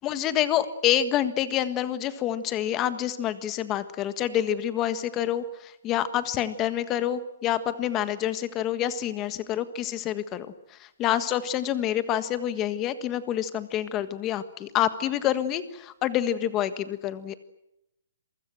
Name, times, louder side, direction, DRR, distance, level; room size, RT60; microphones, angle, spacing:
voice 1, 0.0-17.4, left 11 dB, 15° left, 12 dB, 1.5 m, -27 dB
27.0 x 24.0 x 7.8 m, 0.85 s
hypercardioid pair, 170°, 0 cm